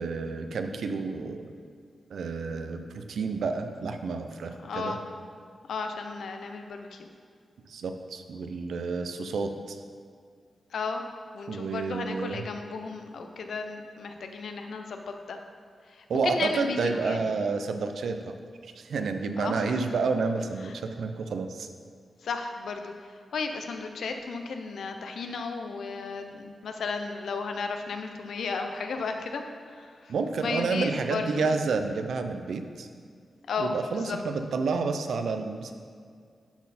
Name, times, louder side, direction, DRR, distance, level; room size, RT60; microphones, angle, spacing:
voice 1, 0.0-1.5 2.1-5.0 7.7-9.8 11.5-12.4 16.1-18.3 18.8-21.7 30.1-32.9 33.6-35.7, right 4 dB, 80° right, 7 dB, 0.5 m, -30 dB
voice 2, 4.6-5.0 5.7-7.1 10.7-11.0 11.3-15.4 15.9-17.2 19.4-19.9 20.6-20.7 22.2-22.9 23.3-31.5 33.5-34.2, left 4 dB, 90° left, 5 dB, 0.6 m, -34 dB
11.5 x 4.3 x 4.2 m, 2.2 s
wide cardioid pair, 160°, 0 cm